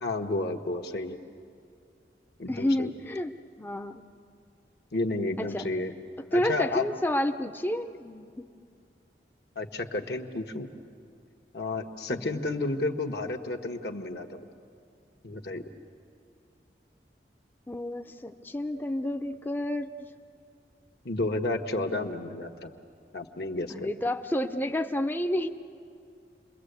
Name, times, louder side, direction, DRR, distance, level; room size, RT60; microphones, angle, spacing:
voice 1, 0.0-1.2 2.4-2.9 4.9-5.9 6.3-6.8 9.5-10.7 11.5-14.4 15.2-15.6 21.0-22.7 23.1-23.9, left 2 dB, 65° left, 4 dB, 1.4 m, -31 dB
voice 2, 2.5-3.3 3.6-4.0 5.4-5.7 6.3-8.5 12.1-12.4 17.7-20.1 21.7-22.1 23.7-25.5, left 1 dB, 10° left, 6 dB, 0.6 m, -30 dB
29.0 x 22.0 x 8.2 m, 2.4 s
head